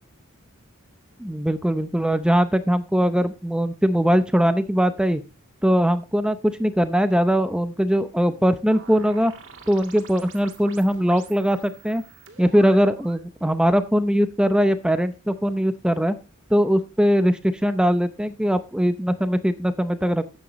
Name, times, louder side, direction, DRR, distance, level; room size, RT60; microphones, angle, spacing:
voice 1, 1.2-5.2 5.6-9.3 9.7-12.0 12.4-16.2 16.5-20.2, equal, 5° right, 10 dB, 0.6 m, -21 dB
sound 1, 8.7-13.3, right 6 dB, 60° right, 2.0 m, -46 dB
12.5 x 8.7 x 3.0 m, 0.29 s
head